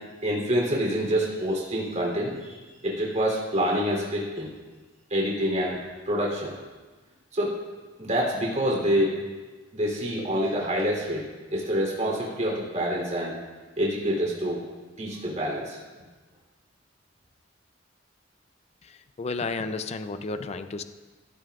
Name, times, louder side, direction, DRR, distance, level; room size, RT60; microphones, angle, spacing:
voice 1, 0.2-2.6 2.8-4.5 5.1-5.8 6.0-6.5 7.3-7.5 8.0-9.1 9.7-13.3 13.8-14.6 15.0-15.8, equal, 40° right, -3 dB, 3.2 m, -26 dB
voice 2, 18.8-20.8, left 3 dB, 35° left, 9 dB, 0.5 m, -32 dB
16.0 x 12.0 x 2.4 m, 1.3 s
head